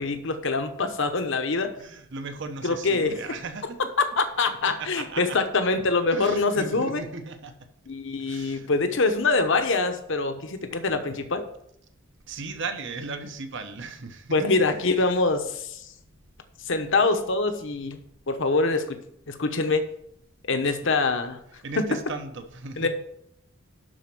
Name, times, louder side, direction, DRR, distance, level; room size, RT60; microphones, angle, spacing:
voice 1, 0.0-1.7 2.6-3.2 4.0-7.0 7.9-11.4 14.3-15.9 16.7-18.0 18.3-19.0 19.3-19.9 20.5-21.4 21.8-22.0 22.8-22.9, left 3 dB, 60° left, 8 dB, 1.0 m, -24 dB
voice 2, 1.8-3.8 4.7-5.4 6.1-7.5 8.3-8.7 12.3-14.5 20.6-20.7 21.6-22.9, right 4 dB, 60° right, 7 dB, 1.0 m, -36 dB
11.5 x 4.3 x 6.0 m, 0.74 s
head